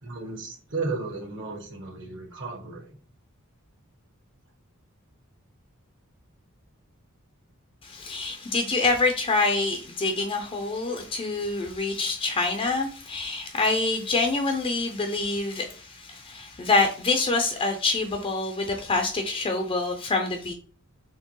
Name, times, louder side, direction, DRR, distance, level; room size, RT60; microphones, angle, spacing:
voice 1, 0.0-3.0, right 3 dB, 60° right, 1.3 m, -34 dB
voice 2, 7.8-20.5, left 3 dB, 25° left, 0.4 m, -26 dB
4.4 x 3.1 x 3.0 m
head